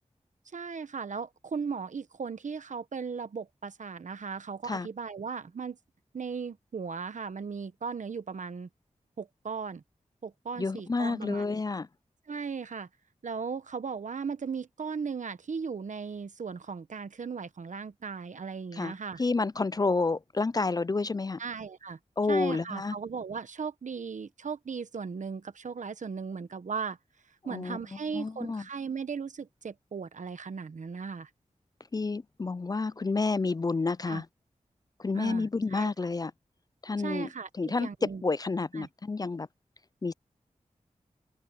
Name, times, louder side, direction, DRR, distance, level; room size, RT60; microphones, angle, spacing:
voice 1, 0.5-5.8 6.1-8.7 9.2-9.8 10.2-11.6 12.3-12.9 13.2-19.2 21.4-22.0 22.3-27.0 27.4-31.3 34.1-34.2 35.1-35.9 37.0-38.2 38.7-38.9, right 5 dB, 75° right, 1.1 m, -37 dB
voice 2, 10.6-11.9 18.7-21.4 22.2-23.0 27.4-27.8 28.1-28.6 31.9-34.3 35.0-36.3 36.8-37.3 37.6-39.5 40.0-40.1, left 3 dB, 30° left, 0.4 m, -29 dB
open air
wide cardioid pair, 70°, 13 cm